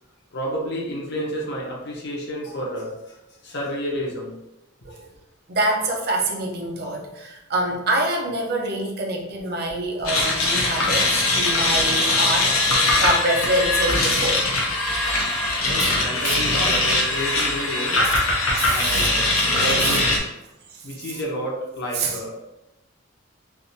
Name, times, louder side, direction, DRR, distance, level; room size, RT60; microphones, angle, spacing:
voice 1, 0.3-4.4 11.8-12.0 15.6-18.1 18.7-19.3 19.6-20.3 20.8-22.5, equal, 55° left, -3 dB, 0.9 m, -30 dB
voice 2, 5.5-14.5 15.8-15.9 16.2-16.4 18.0-18.2 18.5-19.1 19.4-20.0 20.7-21.1 21.9-22.2, right 2 dB, 50° right, 1 dB, 0.6 m, -26 dB
sound 1, 10.1-20.2, left 2 dB, 80° left, 0.8 m, -21 dB
3.4 x 2.6 x 2.7 m, 0.95 s
head